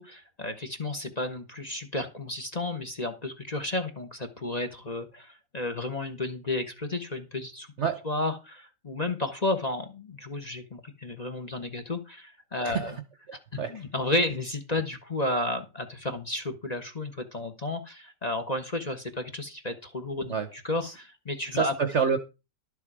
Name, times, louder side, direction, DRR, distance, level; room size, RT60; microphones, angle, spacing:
voice 1, 0.0-7.7 8.0-12.9 13.5-21.7, left 2 dB, 25° left, 1.2 m, -32 dB
voice 2, 21.5-22.2, right 6 dB, 50° right, 1.0 m, -27 dB
12.0 x 7.1 x 4.9 m
omnidirectional pair, 1.8 m